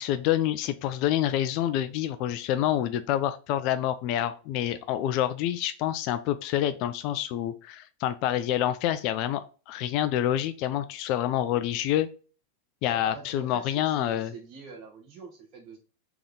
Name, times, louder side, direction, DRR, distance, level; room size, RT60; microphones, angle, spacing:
voice 1, 0.0-12.1 12.8-14.3, left 12 dB, 45° left, 11 dB, 0.3 m, -27 dB
voice 2, 12.9-15.8, right 5 dB, 40° right, 2 dB, 1.4 m, -45 dB
3.5 x 3.4 x 3.6 m, 0.36 s
figure-of-eight pair, 90°, 0 cm